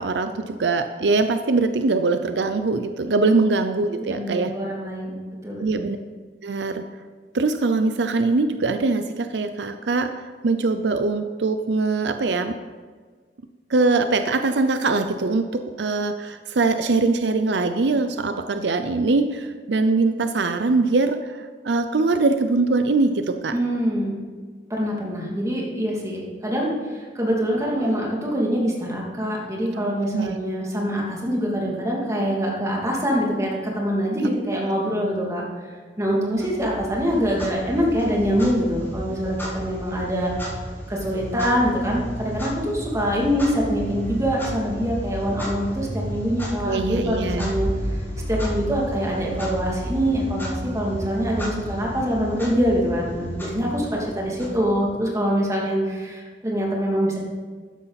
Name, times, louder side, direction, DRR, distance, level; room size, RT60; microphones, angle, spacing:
voice 1, 0.0-4.5 5.6-6.0 6.4-6.8 7.3-12.5 13.7-23.5 30.0-30.4 46.7-47.5, right 3 dB, 75° right, 8 dB, 0.6 m, -22 dB
voice 2, 4.0-5.9 23.5-24.2 24.7-35.4 36.0-40.3 40.9-47.7 48.3-57.2, equal, 20° right, -3 dB, 2.5 m, -24 dB
Clock, 36.4-55.1, equal, 15° left, 4.1 m, -32 dB
13.5 x 9.8 x 4.1 m, 1.5 s
head